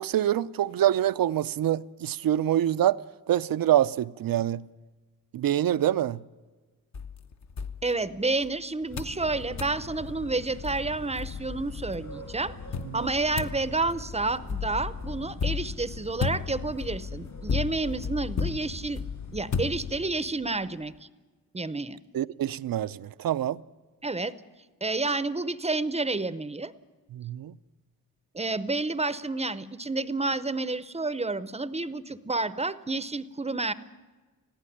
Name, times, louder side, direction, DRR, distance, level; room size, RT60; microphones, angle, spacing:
voice 1, 0.0-3.0 3.3-4.6 5.3-6.2 12.9-13.1 22.1-23.6 27.1-27.5, right 11 dB, 75° right, 0.6 m, -25 dB
sound 1, 6.9-8.5 9.0-9.2 9.6-9.8 10.3-10.4 10.6-11.7 12.7-20.3, left 6 dB, 50° left, 1.0 m, -34 dB
voice 2, 7.8-12.5 12.9-19.0 19.3-20.9 21.5-22.0 24.0-24.3 24.8-26.7 28.3-33.7, right 3 dB, 20° right, 0.7 m, -30 dB
sound 2, 8.9-20.0, left 4 dB, 65° left, 7.0 m, -41 dB
21.0 x 15.5 x 10.0 m
wide cardioid pair, 155°, 34 cm